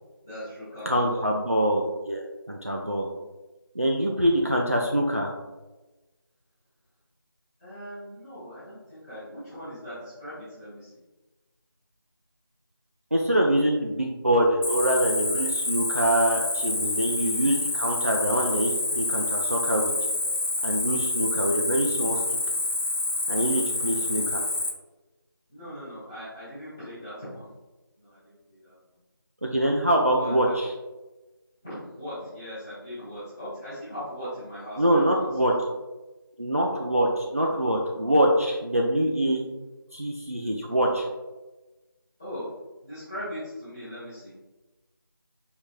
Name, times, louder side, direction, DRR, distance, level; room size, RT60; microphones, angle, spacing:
voice 1, 0.2-1.2 7.6-10.9 24.1-24.4 25.5-27.5 28.0-28.7 30.1-30.5 31.6-35.5 42.2-42.5 42.8-44.3, equal, 5° left, -16 dB, 0.8 m, -39 dB
voice 2, 0.9-3.1 3.8-5.3 13.1-19.9 20.6-22.2 23.3-24.4 29.4-30.7 34.8-35.5 36.4-39.5 39.9-41.1, right 1 dB, 40° right, -1 dB, 0.3 m, -24 dB
Cricket, 14.6-24.7, left 2 dB, 75° left, 0.7 m, -28 dB
4.7 x 3.2 x 2.4 m, 1.1 s
figure-of-eight pair, 175°, 12 cm